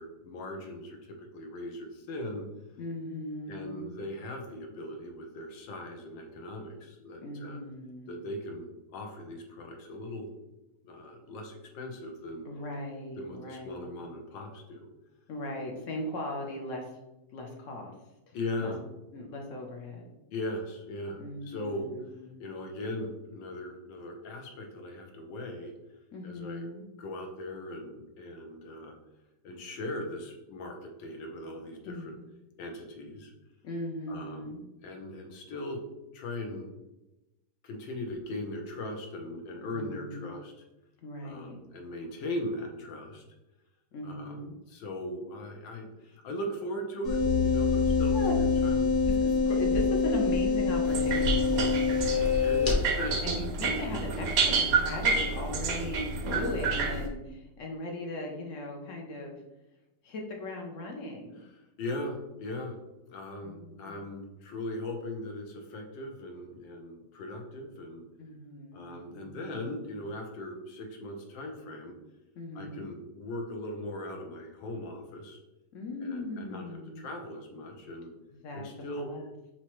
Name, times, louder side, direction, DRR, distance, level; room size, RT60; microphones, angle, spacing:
voice 1, 0.0-2.5 3.5-7.6 8.1-10.3 10.8-12.4 13.2-14.9 18.3-18.8 20.3-21.9 22.4-25.7 26.2-26.7 27.0-28.9 29.4-32.1 32.6-33.3 34.1-34.5 34.8-35.8 36.1-36.7 37.6-40.5 41.2-43.2 44.0-44.4 44.7-48.9 52.4-53.4 61.5-62.8 63.1-68.0 68.7-72.0 72.5-75.4 76.0-78.1 78.5-79.1, left 1 dB, 80° left, 3 dB, 1.5 m, -39 dB
voice 2, 2.8-3.9 7.2-8.2 12.4-13.9 15.3-17.0 17.3-17.9 18.3-18.7 19.1-20.1 21.2-22.4 26.1-26.9 31.8-32.1 33.6-34.6 39.6-40.4 41.0-41.6 43.9-44.6 48.1-48.4 49.1-52.1 53.2-59.4 60.0-61.4 63.4-64.0 68.2-69.7 72.3-72.9 75.7-77.0 78.3-79.3, left 1 dB, 65° left, 1 dB, 0.8 m, -38 dB
sound 1, 47.0-52.7, left 4 dB, 35° left, 0.9 m, -25 dB
sound 2, 50.8-57.1, right 4 dB, 65° right, 0.9 m, -29 dB
5.7 x 2.9 x 3.0 m, 0.98 s
omnidirectional pair, 2.0 m